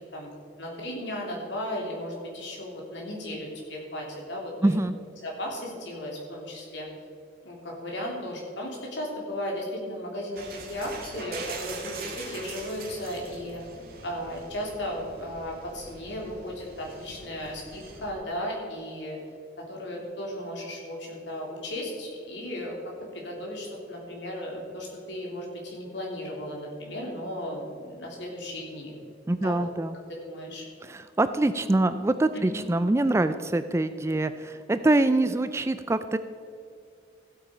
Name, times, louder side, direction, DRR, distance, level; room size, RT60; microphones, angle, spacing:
voice 1, 0.6-4.7 5.2-6.9 7.4-13.6 14.0-19.2 19.6-22.8 23.1-28.9 29.4-29.7 30.2-30.6 32.3-32.4, left 1 dB, 70° left, -2 dB, 3.1 m, -35 dB
voice 2, 4.6-5.0 29.3-30.0 30.8-36.2, right 2 dB, 15° right, 11 dB, 0.3 m, -24 dB
sound 1, 10.4-18.1, right 4 dB, 50° right, 1.8 m, -42 dB
15.5 x 8.3 x 5.0 m, 2.4 s
head